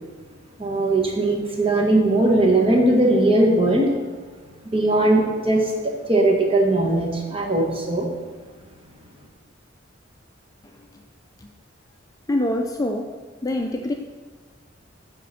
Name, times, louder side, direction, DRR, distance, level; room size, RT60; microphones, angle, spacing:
voice 1, 0.6-3.9 4.7-5.6 6.1-8.0, right 2 dB, 30° right, 0 dB, 1.3 m, -19 dB
voice 2, 10.6-11.0 11.4-11.5 12.3-13.2 13.4-13.9, left 1 dB, 20° left, 3 dB, 0.4 m, -25 dB
9.4 x 3.7 x 5.7 m, 1.4 s
head